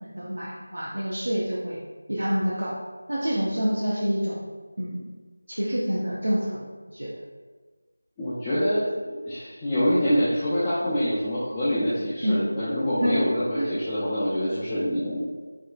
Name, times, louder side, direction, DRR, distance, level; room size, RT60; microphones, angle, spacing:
voice 1, 0.0-1.8 2.1-2.8 3.1-4.4 4.8-5.1 5.5-7.1 12.2-12.5 13.0-13.2 13.6-13.7, equal, 75° right, -6 dB, 0.5 m, -27 dB
voice 2, 8.2-15.3, equal, 15° left, -12 dB, 0.4 m, -25 dB
3.6 x 2.2 x 2.3 m, 1.4 s
figure-of-eight pair, 170°, 0 cm